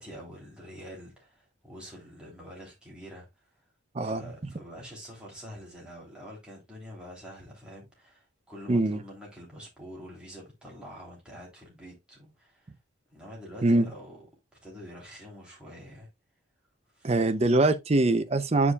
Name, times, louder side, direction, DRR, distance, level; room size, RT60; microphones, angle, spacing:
voice 1, 0.0-3.6 4.0-12.7 13.1-14.3 14.6-16.1 16.9-17.2, equal, 5° right, 3.0 m, -46 dB
voice 2, 8.7-9.0 13.6-13.9 17.0-18.7, right 2 dB, 30° right, 0.6 m, -23 dB
9.7 x 4.7 x 2.3 m
head